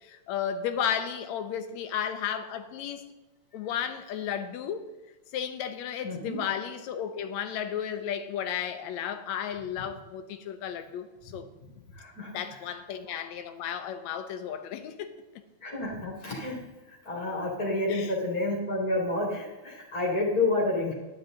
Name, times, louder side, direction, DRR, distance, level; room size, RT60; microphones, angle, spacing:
voice 1, 0.0-3.0 3.5-4.9 5.3-11.5 12.3-15.2 17.9-18.1, left 9 dB, 75° left, 9 dB, 2.0 m, -33 dB
voice 2, 6.0-6.4 12.0-12.3 12.6-12.7 15.6-16.6 16.9-20.9, left 2 dB, 30° left, -3 dB, 2.7 m, -29 dB
12.5 x 10.5 x 3.8 m, 1.1 s
omnidirectional pair, 3.5 m